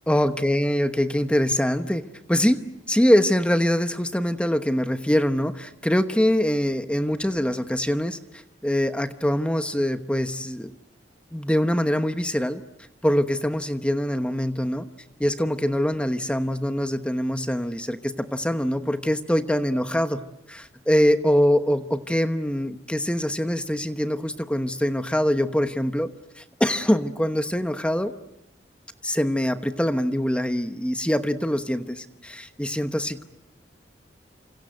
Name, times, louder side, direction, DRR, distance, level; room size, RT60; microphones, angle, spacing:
voice 1, 0.1-2.6 2.9-10.7 11.3-12.6 13.0-14.9 15.2-26.1 26.4-28.1 29.0-33.2, equal, 5° left, 9 dB, 1.0 m, -24 dB
29.5 x 26.0 x 7.9 m, 0.82 s
head